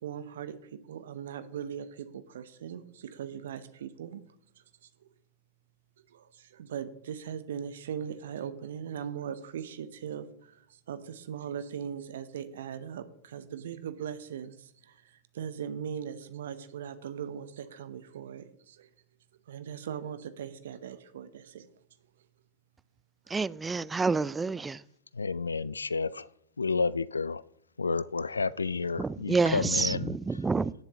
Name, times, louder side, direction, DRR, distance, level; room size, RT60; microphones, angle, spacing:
voice 1, 0.0-4.2 6.1-18.9 19.5-21.7, right 8 dB, 70° right, 1.0 m, -39 dB
voice 2, 23.3-24.8 29.0-30.7, right 4 dB, 15° right, 0.4 m, -28 dB
voice 3, 25.1-26.3 26.6-27.4 27.8-30.1, left 4 dB, 85° left, 0.4 m, -30 dB
17.5 x 7.3 x 3.1 m
figure-of-eight pair, 90°, 0 cm